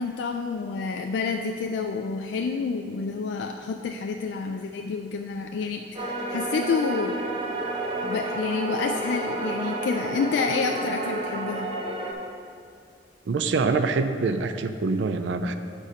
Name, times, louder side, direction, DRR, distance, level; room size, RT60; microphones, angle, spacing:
voice 1, 0.0-7.2 8.0-11.7, left 5 dB, 70° left, 4 dB, 0.3 m, -29 dB
sound 1, 5.9-12.1, right 2 dB, 30° right, 0.7 m, -30 dB
voice 2, 13.3-15.5, right 4 dB, 75° right, 9 dB, 0.4 m, -25 dB
8.2 x 4.2 x 5.0 m, 2.4 s
head